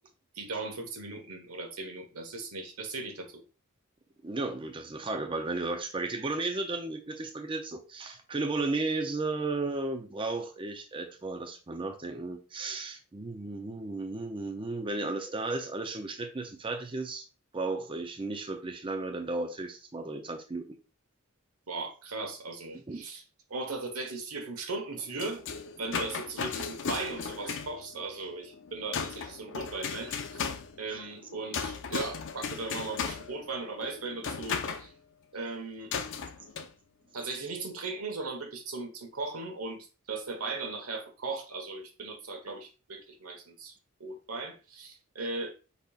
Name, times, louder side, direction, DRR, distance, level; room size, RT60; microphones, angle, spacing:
voice 1, 0.3-3.4 21.7-23.2 23.5-25.4 25.8-30.5 30.8-34.9 35.3-35.9 37.1-43.7 44.0-45.5, right 3 dB, 85° right, 1.3 m, -38 dB
voice 2, 4.2-17.2 17.5-20.8 22.9-23.0 25.9-26.1, right 3 dB, 25° right, 0.6 m, -34 dB
sound 1, 24.9-34.9 35.9-36.7, left 5 dB, 60° left, 0.6 m, -37 dB
5.2 x 4.2 x 2.4 m
head